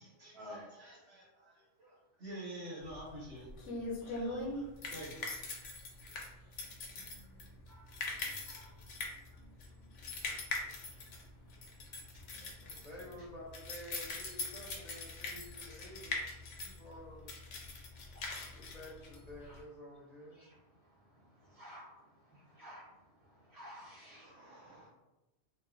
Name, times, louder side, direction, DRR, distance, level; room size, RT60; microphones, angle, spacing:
voice 1, 0.0-3.5 4.0-5.2 5.8-7.6 12.3-13.1 23.9-24.9, right 1 dB, 85° right, -7 dB, 1.5 m, -51 dB
sound 1, 2.9-19.6, left 3 dB, 90° left, 0.9 m, -42 dB
voice 2, 10.5-10.8 18.1-18.4 20.3-20.6 21.4-21.8 22.3-22.8 23.5-24.3, equal, 20° right, -7 dB, 0.8 m, -52 dB
voice 3, 12.7-16.3 16.6-17.3 18.5-20.5, left 1 dB, 45° left, -7 dB, 0.6 m, -51 dB
2.8 x 2.1 x 2.4 m, 1.0 s
omnidirectional pair, 1.2 m